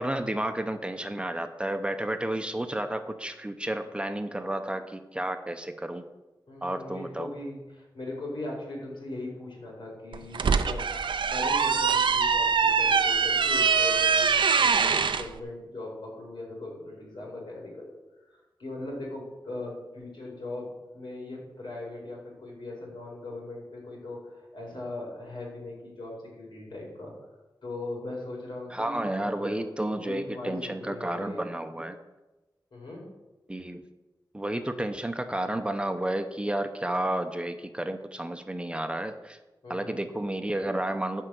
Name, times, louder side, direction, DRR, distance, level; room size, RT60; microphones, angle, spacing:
voice 1, 0.0-6.0 6.6-7.3 28.7-32.0 33.5-33.8 34.3-39.4 39.7-41.3, right 1 dB, 15° right, 7 dB, 0.8 m, -31 dB
voice 2, 6.5-17.9 18.2-27.1 27.6-31.5 32.7-33.0 39.6-40.0, left 2 dB, 85° left, -2 dB, 4.9 m, -39 dB
sound 1, 10.1-15.2, right 6 dB, 85° right, 0.6 m, -23 dB
12.0 x 5.5 x 7.8 m, 1.1 s
wide cardioid pair, 110°, 8 cm